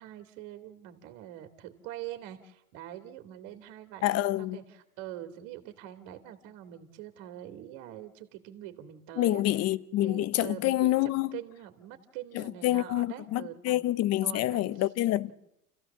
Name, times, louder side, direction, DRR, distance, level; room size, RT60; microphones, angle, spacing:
voice 1, 0.0-9.4 10.0-13.9 14.2-14.6, right 12 dB, 55° right, 2.5 m, -44 dB
voice 2, 4.0-4.6 9.2-11.4 12.3-15.3, left 15 dB, 35° left, 0.8 m, -27 dB
29.0 x 15.0 x 7.2 m
hypercardioid pair, 95°, 43 cm